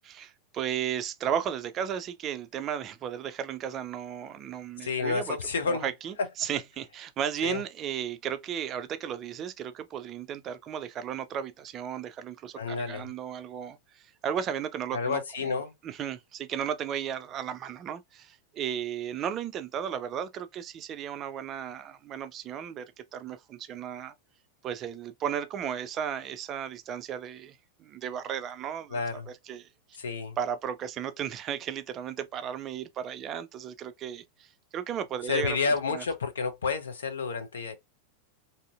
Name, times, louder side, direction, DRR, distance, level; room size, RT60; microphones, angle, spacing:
voice 1, 0.0-5.4 5.6-15.5 15.8-22.8 23.1-24.1 24.6-29.7 30.4-35.6 35.9-36.0, right 9 dB, 30° right, 0.4 m, -35 dB
voice 2, 4.8-5.9 7.4-7.6 12.6-13.1 14.9-15.7 28.9-29.3 30.0-30.4 35.2-37.8, left 5 dB, 65° left, 0.6 m, -30 dB
2.6 x 2.5 x 2.3 m
figure-of-eight pair, 90°, 0 cm